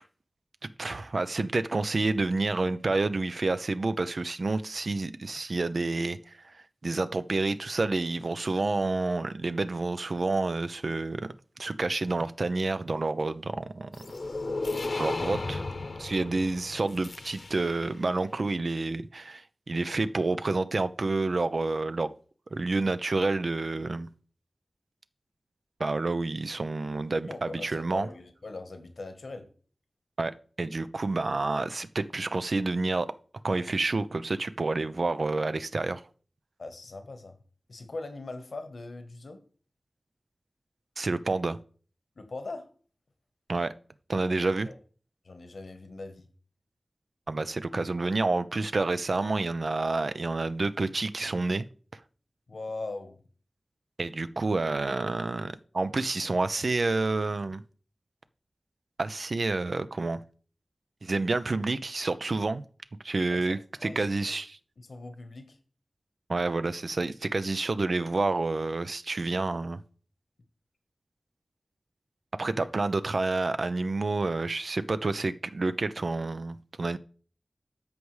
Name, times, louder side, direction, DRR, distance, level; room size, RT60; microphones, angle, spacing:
voice 1, 0.6-11.2 11.6-13.9 15.0-15.6 16.0-22.1 22.5-24.1 25.8-28.1 30.2-30.3 30.6-33.1 33.4-36.0 41.0-41.6 43.5-43.7 44.1-44.7 47.3-51.6 54.0-57.6 59.0-60.2 61.0-62.6 63.0-64.6 66.3-69.8 72.4-77.0, right 3 dB, 65° right, 0.5 m, -29 dB
sound 1, 13.9-18.0, left 3 dB, 70° left, 0.9 m, -34 dB
voice 2, 27.3-29.5 36.6-37.4 37.7-39.4 42.2-42.7 44.3-44.4 44.6-44.8 45.2-46.3 52.5-53.2 63.3-64.4 64.8-65.6 72.6-72.7, left 3 dB, 85° left, 1.1 m, -41 dB
13.5 x 4.8 x 3.2 m
wide cardioid pair, 60°, 0 cm